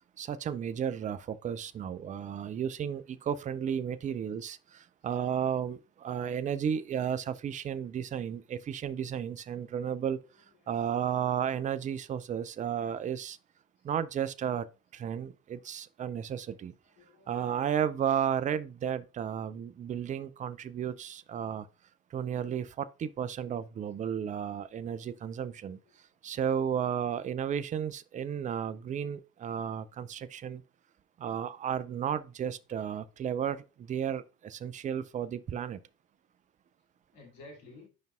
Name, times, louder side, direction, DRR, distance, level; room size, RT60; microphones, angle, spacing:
voice 1, 0.2-10.2 10.7-13.4 13.8-14.7 14.9-16.7 17.3-21.7 22.1-25.8 26.2-30.6 31.2-35.8, right 8 dB, 20° right, 0.4 m, -33 dB
voice 2, 16.8-17.6 25.3-25.4 26.3-26.4 33.5-33.6 37.1-37.9, left 2 dB, 55° left, 2.8 m, -54 dB
9.5 x 5.2 x 2.4 m
hypercardioid pair, 65°, 42 cm